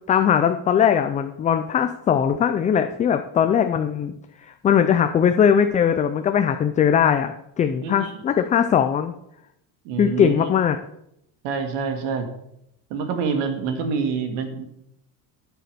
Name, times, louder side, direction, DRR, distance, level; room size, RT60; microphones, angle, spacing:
voice 1, 0.0-4.1 4.4-9.1 10.0-10.8, left 8 dB, 20° left, 8 dB, 0.3 m, -20 dB
voice 2, 7.8-8.2 9.8-10.5 11.4-12.3 12.9-14.6, right 5 dB, 80° right, 6 dB, 2.3 m, -27 dB
9.2 x 8.4 x 6.8 m, 0.78 s
cardioid pair, 150°, 42 cm